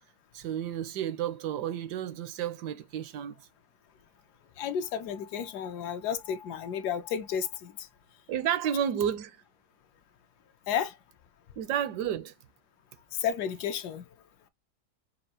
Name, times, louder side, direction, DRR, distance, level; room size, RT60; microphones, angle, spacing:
voice 1, 0.3-3.4 8.3-9.4 11.6-12.3, right 9 dB, 80° right, 1.2 m, -31 dB
voice 2, 4.6-7.9 10.7-11.0 13.1-14.1, left 8 dB, 75° left, 1.2 m, -32 dB
5.6 x 2.4 x 2.8 m
omnidirectional pair, 1.8 m